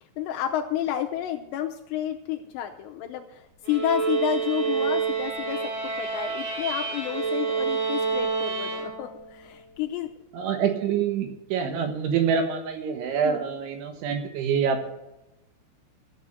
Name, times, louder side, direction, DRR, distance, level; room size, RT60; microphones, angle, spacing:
voice 1, 0.2-10.1 13.2-13.4, left 11 dB, 80° left, 4 dB, 2.7 m, -30 dB
sound 1, 3.6-9.3, right 5 dB, 50° right, 6.4 m, -28 dB
voice 2, 10.3-14.9, right 7 dB, 75° right, 6 dB, 3.7 m, -26 dB
14.5 x 8.2 x 6.6 m, 0.95 s
omnidirectional pair, 5.7 m